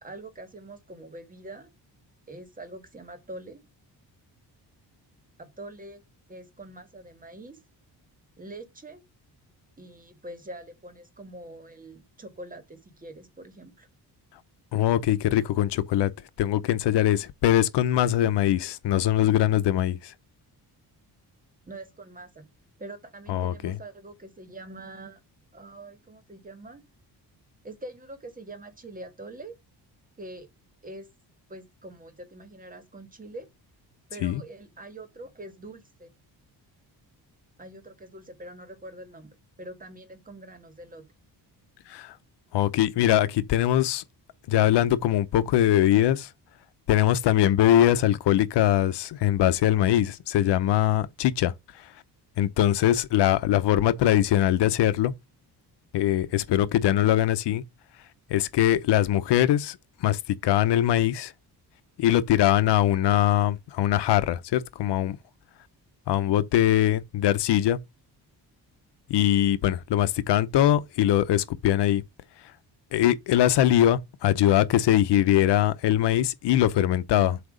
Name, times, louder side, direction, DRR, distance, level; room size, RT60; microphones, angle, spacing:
voice 1, 0.0-1.7 2.3-3.6 5.4-6.0 6.3-7.6 8.4-9.0 9.8-13.9 21.7-22.5 22.8-25.2 25.5-26.8 27.6-29.6 30.2-30.5 30.8-31.1 31.5-33.5 34.1-36.1 37.6-41.1, right 2 dB, 20° right, 1.6 m, -44 dB
voice 2, 14.7-16.1 16.4-20.1 23.3-23.8 34.2-34.4 41.9-42.2 42.5-44.0 44.5-46.3 46.9-51.9 52.4-55.1 55.9-57.6 58.3-61.3 62.0-65.2 66.1-67.8 69.1-72.0 72.9-77.4, left 12 dB, 90° left, 0.8 m, -22 dB
7.9 x 2.9 x 5.0 m
cardioid pair, 150°, 40 cm